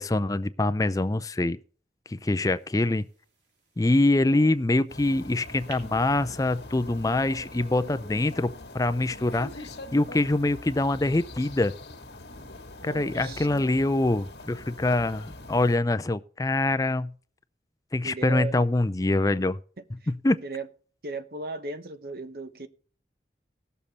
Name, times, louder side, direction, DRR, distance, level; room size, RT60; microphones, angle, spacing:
voice 1, 0.0-1.6 2.1-3.1 3.8-11.7 12.8-17.1 17.9-19.6 20.2-20.4, left 2 dB, 20° left, 0.4 m, -24 dB
sound 1, 2.4-10.9, right 4 dB, 85° right, 3.0 m, -56 dB
voice 2, 4.3-4.6 12.8-13.7 18.0-18.6 19.8-20.1 20.4-20.7 21.0-22.7, right 3 dB, 55° right, 1.0 m, -37 dB
sound 2, 4.9-15.8, left 2 dB, 75° left, 1.5 m, -43 dB
17.5 x 7.0 x 4.1 m
head